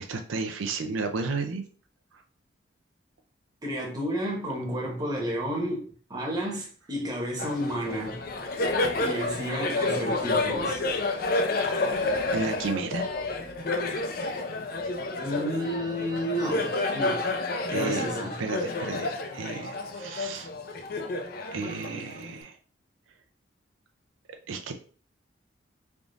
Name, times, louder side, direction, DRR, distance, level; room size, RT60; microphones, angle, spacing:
voice 1, 0.0-1.6 2.1-2.2 12.3-13.1 17.7-18.0 18.4-20.5 21.5-22.6 24.5-24.7, right 4 dB, 90° right, 0.5 m, -32 dB
voice 2, 3.6-5.8 6.1-8.2 9.0-10.8 15.2-17.3 17.7-18.3, equal, 20° right, 1.0 m, -31 dB
Laughter, 7.4-22.4, left 2 dB, 50° left, 0.4 m, -30 dB
3.5 x 2.4 x 3.8 m
head